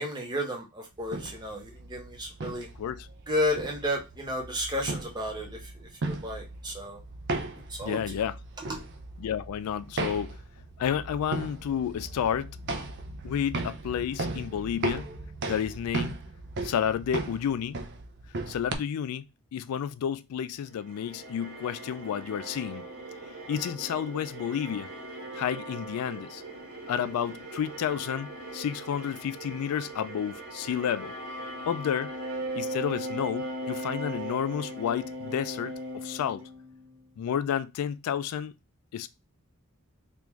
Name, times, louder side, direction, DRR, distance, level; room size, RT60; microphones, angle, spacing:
voice 1, 0.0-2.7 3.3-7.0 7.8-8.0, left 1 dB, 20° right, 0.9 m, -32 dB
sound 1, 1.0-18.7, right 2 dB, 55° right, 0.5 m, -37 dB
voice 2, 7.8-8.4 9.2-10.4 10.8-12.6 13.2-15.1 15.5-16.2 16.6-17.8 18.5-19.2 19.5-22.8 23.5-24.9 25.3-26.4 26.9-31.1 31.7-32.1 32.5-36.4 37.2-38.5 38.9-39.1, left 8 dB, 85° left, 0.3 m, -31 dB
sound 2, 20.7-37.1, right 1 dB, 75° right, 1.3 m, -39 dB
3.5 x 2.5 x 3.0 m
head